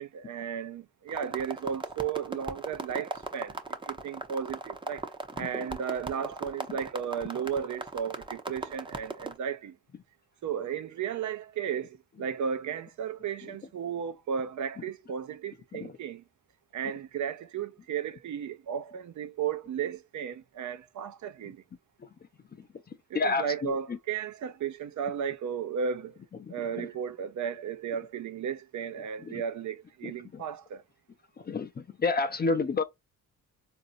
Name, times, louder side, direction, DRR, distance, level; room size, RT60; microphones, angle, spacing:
voice 1, 0.0-9.8 10.4-16.2 16.7-21.6 23.1-26.2 26.5-30.8, right 7 dB, 55° right, 0.6 m, -34 dB
sound 1, 1.1-9.4, right 3 dB, 15° right, 0.7 m, -38 dB
voice 2, 5.4-5.7 6.7-6.8 13.4-13.5 14.8-14.9 15.7-16.0 21.4-21.5 22.0-22.1 22.5-24.0 26.4-26.9 29.2-29.4 30.0-30.4 31.4-32.8, left 4 dB, 25° left, 0.5 m, -32 dB
4.0 x 2.6 x 2.6 m
cardioid pair, 100°, 36 cm